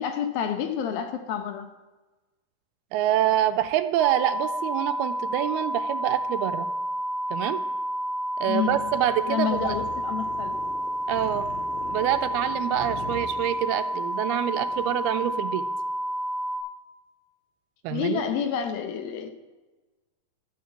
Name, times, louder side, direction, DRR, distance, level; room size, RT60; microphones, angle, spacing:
voice 1, 0.0-1.7 8.5-8.8 9.3-10.6 17.9-19.3, left 8 dB, 75° left, 8 dB, 2.7 m, -29 dB
voice 2, 2.9-6.7 7.3-7.6 8.4-9.7 11.1-11.5 11.9-15.6 17.8-18.2, right 12 dB, 90° right, 10 dB, 2.7 m, -26 dB
sound 1, 4.0-16.6, equal, ahead, 0.6 m, -30 dB
sound 2, 8.7-15.3, left 3 dB, 60° left, 3.5 m, -42 dB
12.5 x 9.7 x 7.9 m, 1.2 s
omnidirectional pair, 4.4 m